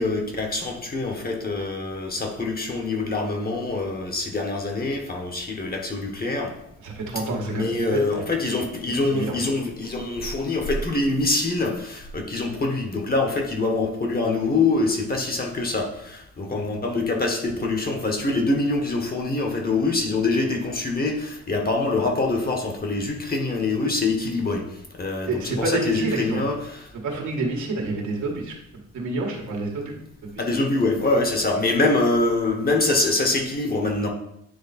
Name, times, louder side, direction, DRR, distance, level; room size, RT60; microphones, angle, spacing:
voice 1, 0.0-6.5 7.3-26.9 30.4-34.1, left 3 dB, 30° left, 2 dB, 1.3 m, -24 dB
voice 2, 6.8-8.0 9.1-9.4 25.3-26.4 27.0-28.5 28.9-30.0 30.2-30.3, right 3 dB, 75° right, -1 dB, 1.8 m, -28 dB
9.5 x 3.2 x 4.2 m, 0.79 s
cardioid pair, 90°, 30 cm